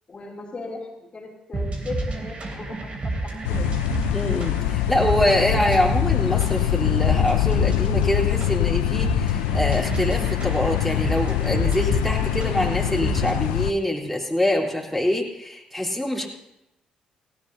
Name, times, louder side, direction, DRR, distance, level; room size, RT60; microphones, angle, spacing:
voice 1, 0.1-3.9, left 3 dB, 40° left, -2 dB, 3.0 m, -37 dB
sound 1, 1.5-13.5, right 2 dB, 45° right, 2.9 m, -30 dB
sound 2, 3.4-13.7, left 15 dB, 85° left, 0.3 m, -24 dB
voice 2, 4.1-16.3, left 1 dB, ahead, -4 dB, 3.6 m, -25 dB
18.0 x 16.0 x 2.8 m, 0.89 s
hypercardioid pair, 50°, 3 cm